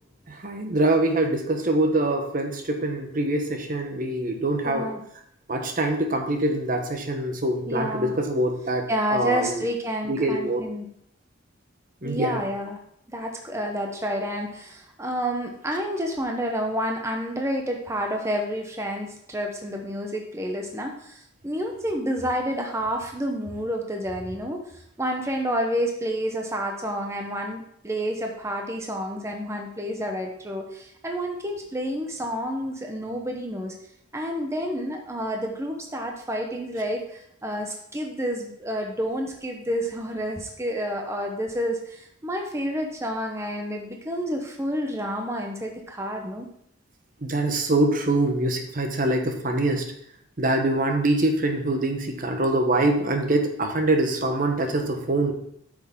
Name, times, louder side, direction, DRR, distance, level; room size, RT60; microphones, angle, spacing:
voice 1, 0.3-4.9 5.5-9.6 10.1-10.6 12.0-12.4 47.2-49.9 50.4-55.3, right 2 dB, 45° right, 4 dB, 0.9 m, -24 dB
voice 2, 4.6-5.0 7.7-8.1 8.9-10.8 12.0-12.8 13.1-24.6 25.0-33.7 34.1-46.5, equal, 15° right, 2 dB, 0.8 m, -29 dB
8.4 x 6.3 x 3.6 m, 0.71 s
head